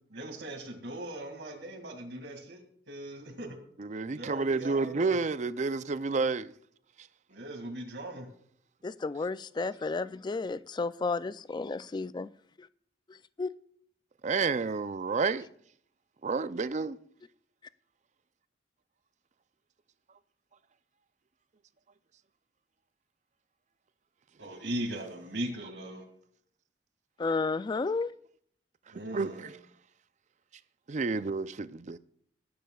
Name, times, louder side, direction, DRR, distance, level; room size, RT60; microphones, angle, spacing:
voice 1, 0.1-3.6 4.1-5.1 7.3-8.3 24.4-26.0 28.9-29.5, right 1 dB, 80° right, 2.2 m, -39 dB
voice 2, 3.8-6.5 14.2-15.5 16.2-17.0 29.1-29.5 30.9-32.0, right 4 dB, 40° right, 0.5 m, -30 dB
voice 3, 8.8-12.3 12.6-12.7 13.1-13.5 27.2-28.1, left 3 dB, 25° left, 0.3 m, -32 dB
19.0 x 10.0 x 2.4 m
head